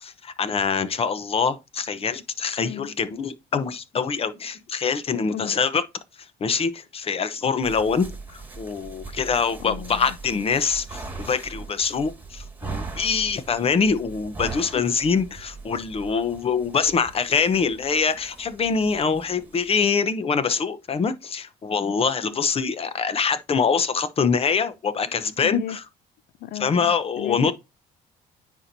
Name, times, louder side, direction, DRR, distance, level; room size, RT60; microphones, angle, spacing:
voice 1, 0.0-5.8 6.4-25.8 26.6-27.5, left 5 dB, 35° left, 0.9 m, -24 dB
sound 1, 7.6-19.9, right 4 dB, 10° right, 2.0 m, -40 dB
voice 2, 9.6-10.2 14.5-14.8 25.4-25.8 26.4-27.5, left 14 dB, 60° left, 0.4 m, -35 dB
9.7 x 4.5 x 2.7 m
cardioid pair, 110°, 17 cm